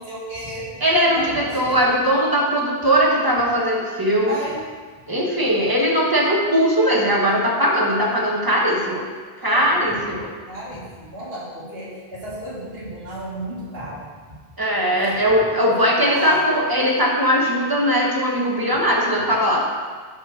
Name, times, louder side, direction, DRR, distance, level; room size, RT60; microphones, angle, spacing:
voice 1, 0.0-1.8 4.2-4.7 9.4-9.7 10.5-14.1 14.9-15.2 15.5-16.6, right 1 dB, 70° right, -7 dB, 2.1 m, -33 dB
voice 2, 0.8-4.4 5.1-9.1 9.4-10.3 14.6-19.6, equal, 20° right, -3 dB, 1.2 m, -19 dB
7.9 x 3.7 x 6.3 m, 1.5 s
omnidirectional pair, 1.0 m